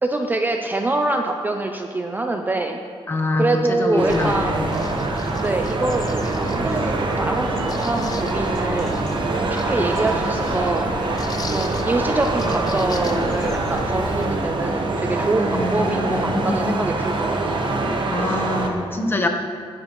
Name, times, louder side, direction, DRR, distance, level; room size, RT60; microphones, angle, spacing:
voice 1, 0.0-2.8 3.3-4.6 5.4-9.0 9.3-10.9 11.5-17.6, right 2 dB, 20° right, 4 dB, 0.5 m, -25 dB
voice 2, 3.1-4.8 10.1-10.2 15.5-16.6 18.1-19.3, left 2 dB, 20° left, 3 dB, 1.0 m, -25 dB
sound 1, 4.0-18.7, right 2 dB, 50° right, 1.0 m, -24 dB
sound 2, 4.1-14.3, left 3 dB, 40° left, 0.6 m, -34 dB
15.5 x 9.9 x 3.0 m, 2.2 s
wide cardioid pair, 160°, 10 cm